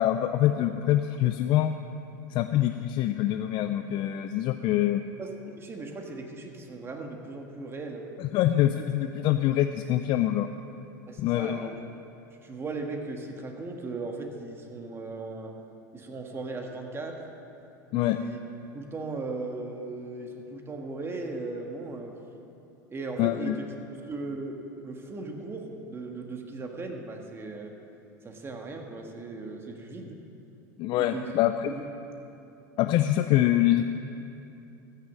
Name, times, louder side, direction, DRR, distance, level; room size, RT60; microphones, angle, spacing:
voice 1, 0.0-1.7 2.3-5.0 8.2-10.5 11.2-11.7 17.9-18.2 23.2-23.6 30.8-31.7 32.8-33.8, left 13 dB, 50° left, 8 dB, 0.4 m, -25 dB
voice 2, 5.6-8.1 11.1-11.8 12.3-15.6 15.9-17.3 17.9-18.4 18.7-22.2 22.9-23.7 24.1-27.7 28.2-30.2 31.0-31.3 31.7-31.8, right 3 dB, 25° right, 3 dB, 1.6 m, -37 dB
14.0 x 6.6 x 7.5 m, 2.8 s
hypercardioid pair, 100°, 10 cm